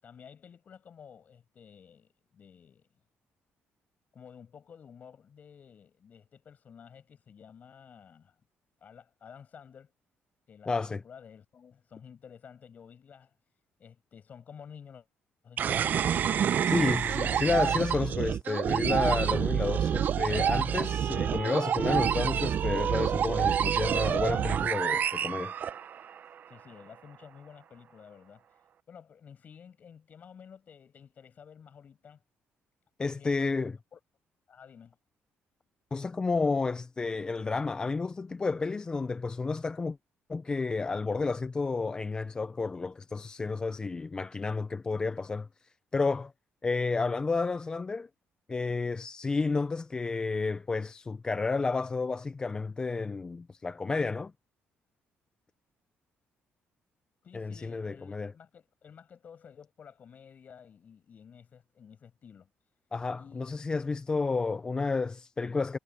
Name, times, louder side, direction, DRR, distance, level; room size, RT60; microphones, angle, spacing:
voice 1, 0.0-2.9 4.1-8.3 8.8-9.9 10.5-13.3 13.8-15.1 15.4-16.1 26.5-28.4 28.9-32.2 33.0-34.0 34.5-35.0 57.2-62.5 63.1-63.9, left 7 dB, 40° left, 7.7 m, -52 dB
voice 2, 10.7-11.0 16.7-25.5 33.0-33.7 35.9-40.0 40.3-45.5 45.9-46.3 46.6-48.1 48.5-54.3 57.3-58.3 62.9-65.8, left 4 dB, 20° left, 0.4 m, -31 dB
sound 1, 15.6-26.2, right 8 dB, 45° right, 0.6 m, -28 dB
cardioid pair, 155°, 4 cm